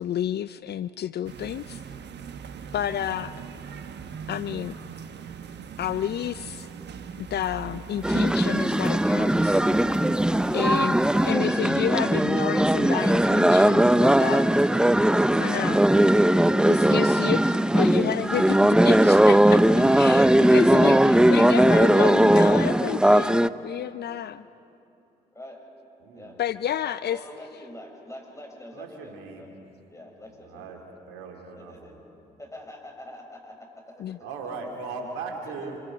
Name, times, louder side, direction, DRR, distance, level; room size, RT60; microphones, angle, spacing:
voice 1, 0.0-1.8 2.7-3.3 4.3-4.7 5.8-6.7 7.2-9.6 10.5-11.0 11.2-14.5 15.4-15.9 16.7-24.4 26.4-27.2 34.0-34.2, left 10 dB, 55° left, 15 dB, 0.5 m, -30 dB
sound 1, 1.2-11.3, right 6 dB, 60° right, 1.2 m, -41 dB
sound 2, 8.0-23.5, right 1 dB, 5° right, 0.6 m, -19 dB
voice 2, 26.0-26.3 28.7-29.4 30.4-30.8 31.1-32.0 34.2-35.8, right 4 dB, 80° right, 2 dB, 2.8 m, -38 dB
voice 3, 27.1-29.5 29.9-30.8 31.6-31.9 32.4-34.2 35.5-35.7, left 1 dB, 15° left, 0 dB, 7.3 m, -44 dB
27.0 x 24.5 x 5.2 m, 2.8 s
hypercardioid pair, 50°, 20 cm